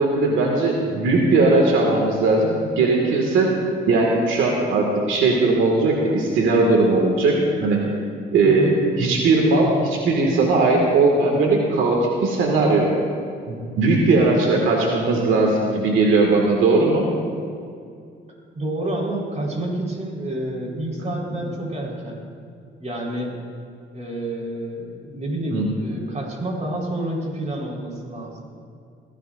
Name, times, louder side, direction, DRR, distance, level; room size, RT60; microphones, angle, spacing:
voice 1, 0.0-3.5 3.9-7.8 8.3-12.9 13.5-17.0 21.0-21.1 25.5-25.7, right 3 dB, 80° right, -1 dB, 2.0 m, -19 dB
voice 2, 8.4-8.8 14.1-14.4 18.5-22.2 22.8-23.3 23.9-28.3, right 1 dB, 35° right, -1 dB, 4.4 m, -29 dB
22.0 x 16.0 x 2.6 m, 2.3 s
cardioid pair, 90°, 20 cm